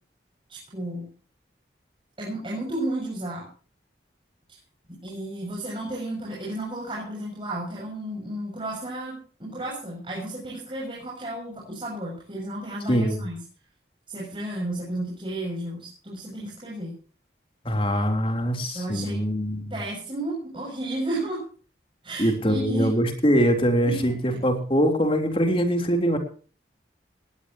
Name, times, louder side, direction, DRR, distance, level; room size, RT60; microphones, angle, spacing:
voice 1, 0.5-1.1 2.2-3.5 5.0-13.4 14.1-16.9 18.7-19.2 19.7-21.4 22.0-22.9 23.8-24.1, right 1 dB, 30° right, -4 dB, 6.8 m, -32 dB
voice 2, 12.9-13.2 17.7-19.8 22.2-26.2, equal, 30° left, 5 dB, 3.5 m, -23 dB
19.5 x 18.0 x 2.9 m, 0.39 s
head